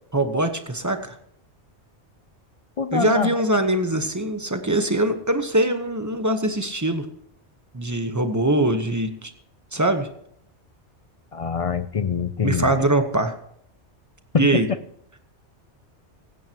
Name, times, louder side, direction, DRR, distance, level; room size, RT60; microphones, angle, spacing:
voice 1, 0.1-1.1 2.9-7.1 7.7-9.3 9.7-10.1 12.4-13.4 14.3-14.7, right 1 dB, 15° right, 7 dB, 1.1 m, -22 dB
voice 2, 2.8-3.4 11.3-12.8 14.3-14.6, left 6 dB, 45° left, 13 dB, 0.4 m, -24 dB
16.5 x 16.0 x 3.0 m, 0.70 s
omnidirectional pair, 1.2 m